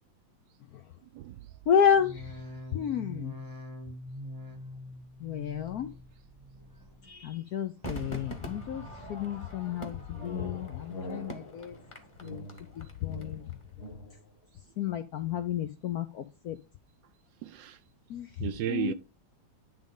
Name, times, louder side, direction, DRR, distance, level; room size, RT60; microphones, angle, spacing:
voice 1, 1.1-1.5 12.3-12.4 17.4-17.8 18.4-18.9, right 11 dB, 75° right, 1.2 m, -34 dB
voice 2, 1.7-2.4 2.7-3.4 5.2-5.9 7.1-8.8 9.1-11.8 12.2-12.5 12.8-13.5 14.8-16.6 18.1-18.3 18.7-18.9, left 8 dB, 70° left, 0.9 m, -30 dB
sound 1, 1.9-7.3 7.6-8.2 8.7-9.3 9.8-10.4 10.9-11.5 12.0-12.6 13.1-13.2, left 1 dB, 15° right, 1.0 m, -46 dB
Crowd / Fireworks, 7.8-13.2 13.5-13.6, equal, 15° left, 1.3 m, -43 dB
sound 2, 9.7-14.3, left 1 dB, 45° left, 2.2 m, -44 dB
10.0 x 3.7 x 5.3 m
omnidirectional pair, 2.2 m